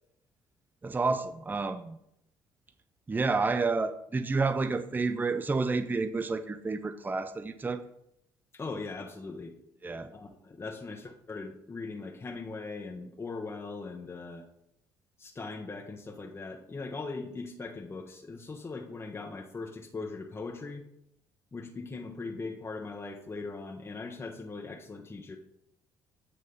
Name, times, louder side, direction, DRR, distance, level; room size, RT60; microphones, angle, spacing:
voice 1, 0.8-2.0 3.1-7.8 9.8-10.1, right 3 dB, 20° right, 0.5 m, -30 dB
voice 2, 8.5-9.6 10.1-14.4 15.2-20.8 21.5-25.4, left 3 dB, 25° left, 0.9 m, -40 dB
8.5 x 3.2 x 5.4 m
hypercardioid pair, 60°, 10 cm